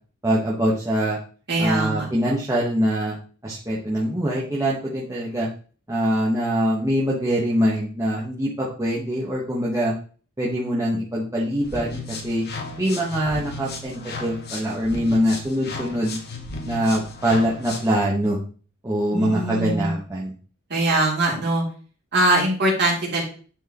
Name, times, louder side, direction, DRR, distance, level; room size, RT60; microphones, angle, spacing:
voice 1, 0.2-1.2 1.6-3.2 3.4-5.5 5.9-9.9 10.4-12.4 12.8-16.2 16.6-18.4 18.8-20.3, equal, 15° right, -6 dB, 1.2 m, -23 dB
voice 2, 1.5-2.1 19.1-19.9 20.7-21.6 22.1-23.2, right 1 dB, 55° right, -3 dB, 2.9 m, -22 dB
sound 1, 11.6-18.0, left 2 dB, 50° left, 1.2 m, -35 dB
9.9 x 4.6 x 3.0 m, 0.40 s
head